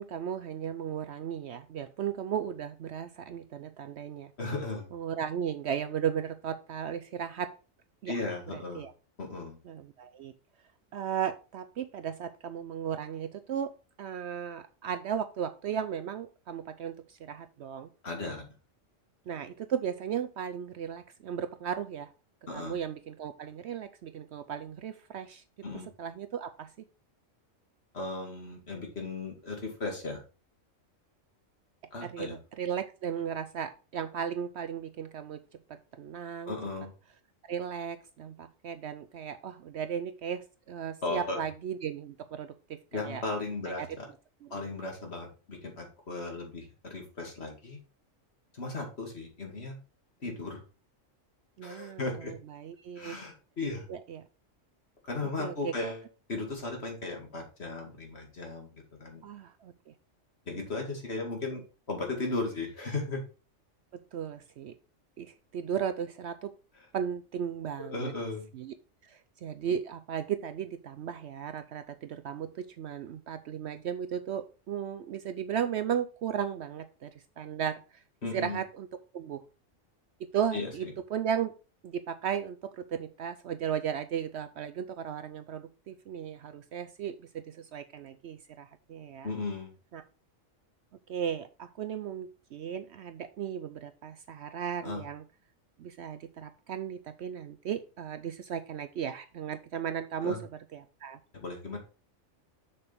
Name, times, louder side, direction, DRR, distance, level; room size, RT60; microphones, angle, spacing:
voice 1, 0.0-4.3 4.9-7.5 8.0-8.2 8.5-8.9 9.6-10.3 10.9-13.7 14.0-17.9 19.3-22.1 22.5-25.4 26.0-26.9 32.0-35.4 35.7-36.5 37.4-43.2 43.7-43.9 44.5-44.7 51.6-53.2 53.9-54.2 55.4-55.9 59.2-59.9 63.9-64.7 65.2-66.5 66.9-68.1 68.5-68.7 69.0-77.1 77.4-78.0 78.3-78.9 79.1-79.4 80.2-81.5 81.8-89.3 89.9-90.0 91.1-95.2 95.8-100.4 100.7-101.2, right 8 dB, 65° right, 10 dB, 0.8 m, -36 dB
voice 2, 4.4-4.9 8.1-8.9 9.2-9.6 18.0-18.5 22.5-22.8 25.6-25.9 27.9-30.2 31.9-32.4 36.4-36.9 41.0-41.4 42.9-44.1 44.5-47.8 48.5-49.8 50.2-50.6 51.6-52.3 53.0-53.9 55.0-56.0 56.3-59.2 60.5-61.6 61.9-63.2 67.8-68.5 78.2-78.6 80.5-80.9 89.2-89.7 94.8-95.0 100.2-100.4 101.3-101.8, left 3 dB, 50° left, 2 dB, 2.4 m, -36 dB
7.0 x 6.8 x 3.4 m, 0.33 s
omnidirectional pair, 1.4 m